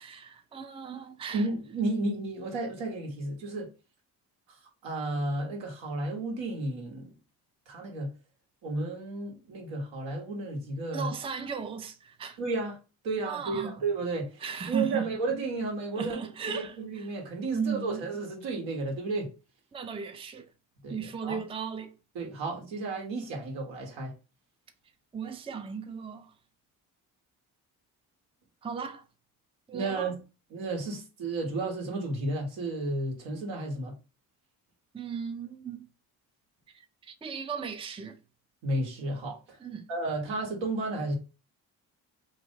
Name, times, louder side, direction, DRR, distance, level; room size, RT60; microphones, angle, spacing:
voice 1, 0.0-1.4 10.9-12.4 13.2-13.7 14.4-15.1 16.0-17.1 17.5-18.0 19.7-20.5 20.9-21.9 25.1-26.3 28.6-29.0 29.7-30.1 34.9-35.9 36.7-38.2 39.6-39.8, right 6 dB, 10° right, 0.5 m, -36 dB
voice 2, 1.3-3.7 4.8-7.1 7.7-8.1 8.6-11.1 12.4-12.8 13.0-16.2 16.5-19.3 20.8-21.4 22.1-24.1 29.7-30.2 30.5-34.0 38.6-39.6 39.9-41.2, right 2 dB, 75° right, 1.4 m, -32 dB
2.9 x 2.6 x 3.7 m
hypercardioid pair, 55°, 46 cm